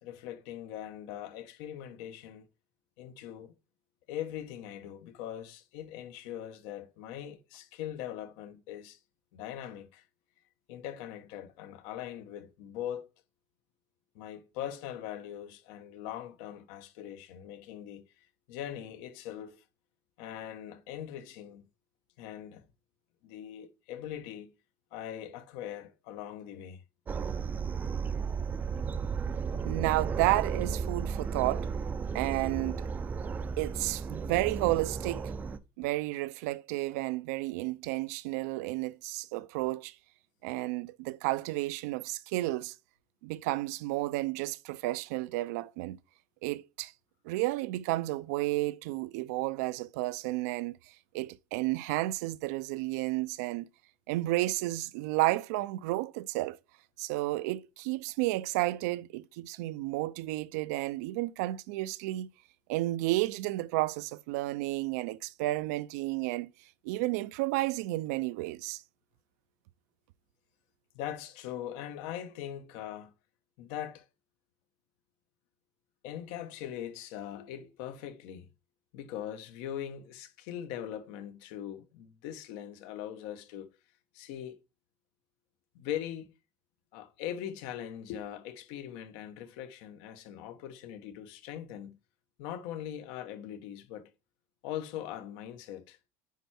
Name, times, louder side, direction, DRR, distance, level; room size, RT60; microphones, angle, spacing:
voice 1, 0.0-2.5 3.0-3.5 4.1-9.0 9.3-10.0 10.7-13.0 14.1-19.6 20.2-21.6 22.2-22.6 23.2-24.5 24.9-26.8 29.5-29.6 70.9-73.1 73.6-74.1 76.0-78.5 78.9-83.7 84.1-84.6 85.7-86.3 86.9-92.0 92.4-94.1 94.6-96.0, left 10 dB, 70° left, 1.1 m, -41 dB
sound 1, 27.1-35.6, right 5 dB, 20° right, 0.5 m, -34 dB
voice 2, 29.6-31.7 32.1-32.9 33.6-35.3 35.8-39.9 40.4-42.7 43.2-46.0 46.4-46.9 47.2-50.8 51.1-53.7 54.1-56.6 57.0-62.3 62.7-66.5 66.8-68.8, right 18 dB, 80° right, 0.5 m, -32 dB
9.3 x 4.6 x 4.3 m
cardioid pair, 150°, 9 cm